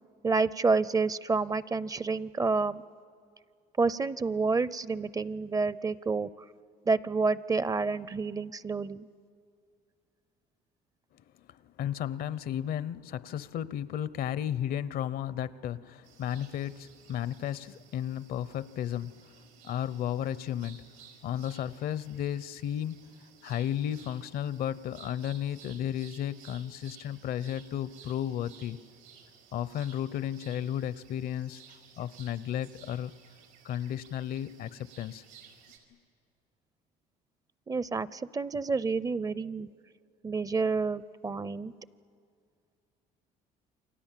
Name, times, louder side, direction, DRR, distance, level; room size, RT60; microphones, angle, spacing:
voice 1, 0.2-2.8 3.8-6.3 6.9-9.1 37.7-39.7 40.2-41.7, right 4 dB, 20° right, 0.6 m, -29 dB
voice 2, 11.5-20.8 21.2-23.1 23.4-28.8 29.5-31.6 32.0-33.1 33.6-35.2, left 10 dB, 65° left, 0.8 m, -34 dB
sound 1, 16.0-35.8, right 7 dB, 85° right, 4.8 m, -56 dB
29.0 x 25.0 x 7.5 m
cardioid pair, 100°, 17 cm